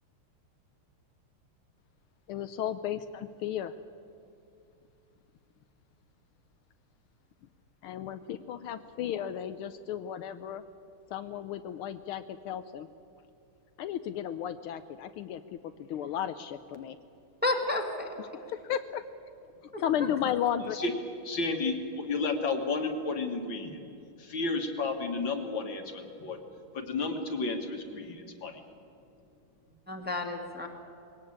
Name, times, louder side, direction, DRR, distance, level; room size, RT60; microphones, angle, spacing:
voice 1, 2.3-3.7 7.8-10.6 11.1-12.9 13.8-15.4 15.9-17.0 18.2-19.0 19.8-20.8, left 10 dB, 80° left, 10 dB, 1.5 m, -34 dB
voice 2, 17.4-18.1 19.7-19.8 29.9-30.7, left 2 dB, 5° right, 2 dB, 1.8 m, -31 dB
voice 3, 21.2-23.8 24.2-26.4 26.7-28.6, left 3 dB, 60° left, 5 dB, 2.4 m, -32 dB
21.0 x 17.5 x 8.6 m, 2.6 s
omnidirectional pair, 2.4 m